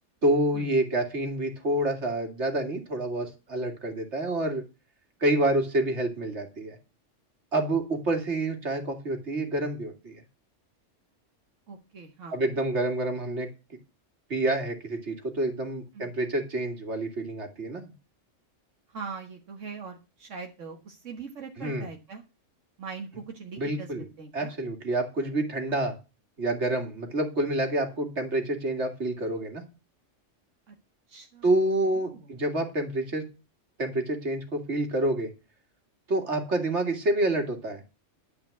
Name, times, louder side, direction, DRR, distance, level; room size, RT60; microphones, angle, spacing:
voice 1, 0.2-4.6 5.2-6.8 7.5-10.2 12.3-13.5 14.3-17.9 21.6-21.9 23.6-24.0 24.3-26.0 26.4-29.6 31.4-33.2 33.8-35.3 36.1-37.8, right 1 dB, 65° right, 4 dB, 2.6 m, -28 dB
voice 2, 11.7-12.4 15.9-16.1 18.9-22.2 22.8-24.5 30.7-30.8 31.1-31.5 31.9-32.3, right 5 dB, 85° right, 2 dB, 1.7 m, -41 dB
12.0 x 5.1 x 8.3 m, 0.30 s
omnidirectional pair, 1.2 m